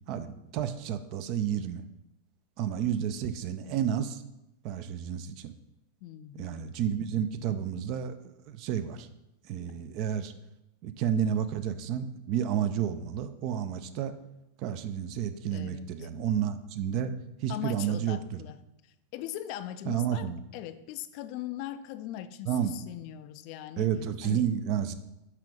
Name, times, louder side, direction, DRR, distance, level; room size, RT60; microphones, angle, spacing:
voice 1, 0.1-1.8 2.6-4.2 4.6-5.5 6.4-8.1 8.5-9.1 9.5-10.3 10.8-14.1 14.6-17.1 17.4-18.4 19.9-20.4 22.5-22.8 23.8-24.9, right 9 dB, 40° right, 10 dB, 0.5 m, -31 dB
voice 2, 6.0-6.7 15.5-16.1 17.5-18.6 18.8-23.9 24.2-24.5, left 13 dB, 45° left, 12 dB, 0.4 m, -40 dB
5.7 x 4.8 x 5.2 m, 0.91 s
figure-of-eight pair, 90°, 0 cm